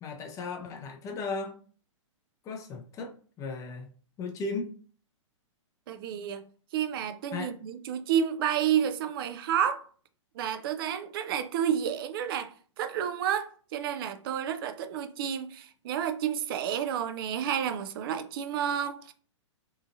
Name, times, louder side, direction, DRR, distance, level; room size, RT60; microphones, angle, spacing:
voice 1, 0.0-1.6 2.4-3.9 4.2-4.7 7.3-7.5, left 3 dB, 20° left, 0.5 m, -36 dB
voice 2, 5.9-6.4 6.7-9.8 10.4-19.1, right 9 dB, 45° right, 0.4 m, -30 dB
2.8 x 2.4 x 2.6 m
figure-of-eight pair, 115°, 16 cm